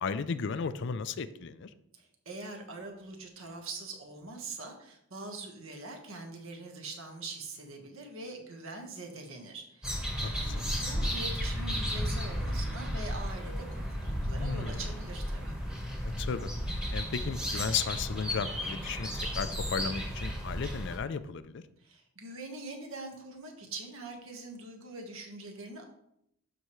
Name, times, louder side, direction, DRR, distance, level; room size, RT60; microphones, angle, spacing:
voice 1, 0.0-1.7 10.2-10.6 14.4-14.8 16.0-16.5 16.9-21.6, left 6 dB, 55° left, 13 dB, 0.4 m, -35 dB
voice 2, 1.9-15.6 21.8-25.8, right 2 dB, 65° right, 3 dB, 1.4 m, -43 dB
sound 1, 9.8-21.0, equal, 5° right, 1.2 m, -34 dB
12.0 x 4.7 x 3.1 m, 0.77 s
head